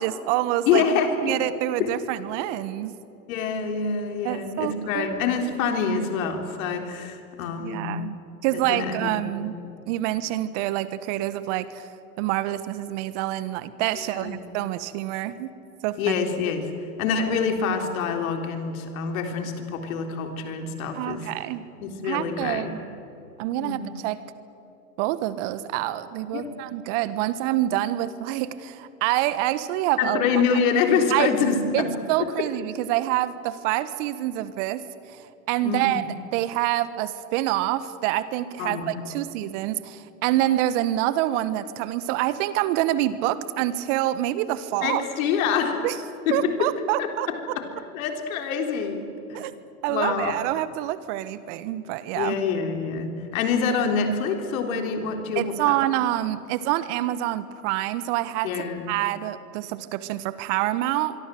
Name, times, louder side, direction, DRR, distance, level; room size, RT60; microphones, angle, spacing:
voice 1, 0.0-0.8 1.2-3.0 4.2-5.1 7.6-8.2 8.4-9.5 9.9-11.9 12.2-15.5 15.8-16.1 20.9-21.7 22.0-22.8 23.4-24.2 25.0-30.2 31.1-31.3 31.7-35.2 35.5-36.0 36.3-45.0 45.8-46.0 46.3-47.3 49.3-49.5 49.8-52.4 55.4-58.5 58.9-61.2, right 14 dB, 55° right, 15 dB, 1.4 m, -26 dB
voice 2, 0.7-1.4 1.8-2.0 3.3-8.0 8.5-9.5 14.0-14.5 16.0-16.7 17.0-21.3 21.8-22.7 23.6-23.8 26.3-26.6 30.0-31.9 32.2-32.3 35.6-36.0 38.6-39.0 44.8-45.9 46.3-46.6 47.0-49.5 49.9-50.3 52.1-55.8 58.4-58.9, left 6 dB, 65° left, 5 dB, 3.8 m, -26 dB
25.0 x 23.5 x 7.8 m, 2.8 s
hypercardioid pair, 95°, 45 cm